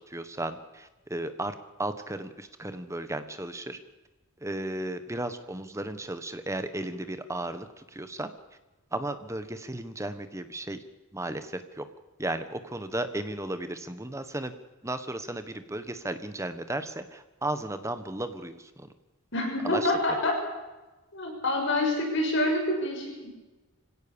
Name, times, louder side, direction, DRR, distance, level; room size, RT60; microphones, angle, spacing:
voice 1, 0.1-1.5 1.8-3.8 4.4-8.3 8.9-10.8 11.1-11.8 12.2-14.5 14.8-18.9 19.6-19.9, right 1 dB, 15° right, 10 dB, 1.3 m, -34 dB
voice 2, 19.3-20.4 21.1-23.3, left 1 dB, 55° left, 1 dB, 6.5 m, -27 dB
25.0 x 17.0 x 7.1 m, 1.1 s
head